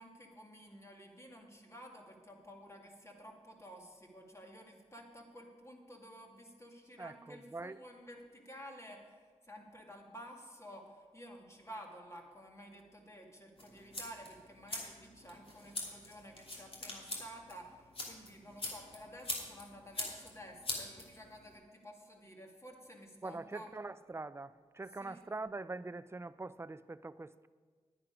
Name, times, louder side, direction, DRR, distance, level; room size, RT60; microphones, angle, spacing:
voice 1, 0.0-23.7 24.8-25.2, equal, 20° left, 0 dB, 2.3 m, -52 dB
voice 2, 7.0-7.8 23.2-27.5, right 3 dB, 20° right, 15 dB, 0.4 m, -43 dB
Lightner keep trying (Xlr), 13.6-21.5, left 2 dB, 45° left, 2.9 m, -44 dB
10.5 x 10.0 x 5.0 m, 1.5 s
cardioid pair, 45°, 13 cm